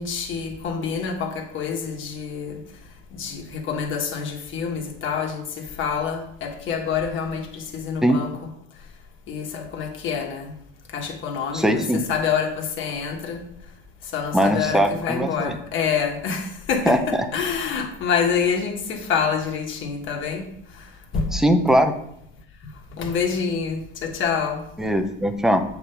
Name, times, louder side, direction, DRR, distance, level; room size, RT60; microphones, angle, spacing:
voice 1, 0.0-2.6 3.1-8.3 9.3-10.5 10.9-13.4 14.1-20.4 21.1-21.3 23.0-24.6, left 6 dB, 40° left, 1.4 m, -27 dB
voice 2, 11.5-12.0 14.3-15.6 16.9-17.0 21.3-21.9 24.8-25.6, equal, ahead, 0.4 m, -20 dB
8.0 x 3.6 x 5.7 m
supercardioid pair, 140°, 32 cm